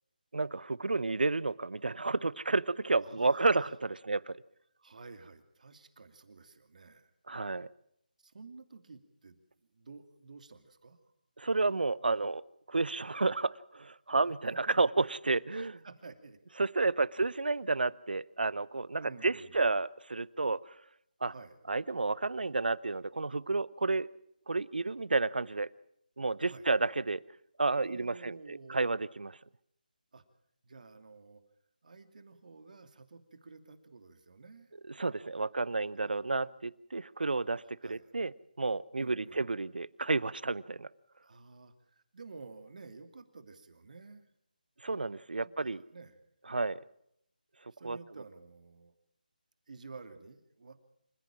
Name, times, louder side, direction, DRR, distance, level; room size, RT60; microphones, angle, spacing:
voice 1, 0.3-4.4 7.3-7.7 11.4-12.4 12.7-15.8 16.6-20.8 21.2-21.3 21.7-24.1 24.5-25.7 26.2-27.2 27.6-28.3 28.7-29.4 35.0-38.3 38.6-40.9 44.8-45.8 46.5-46.8 47.8-48.0, right 3 dB, 75° right, 21 dB, 0.8 m, -31 dB
voice 2, 3.0-3.7 4.8-7.1 8.2-11.0 14.4-14.8 15.8-16.4 19.0-19.7 21.3-21.6 26.4-26.7 27.8-28.9 30.1-30.2 30.6-31.4 31.8-34.7 35.9-36.2 37.8-38.1 39.0-39.4 41.2-44.2 45.4-46.2 47.7-48.9 49.7-50.7, right 4 dB, 55° right, 8 dB, 2.7 m, -51 dB
27.0 x 15.0 x 7.4 m, 0.75 s
figure-of-eight pair, 160°, 5 cm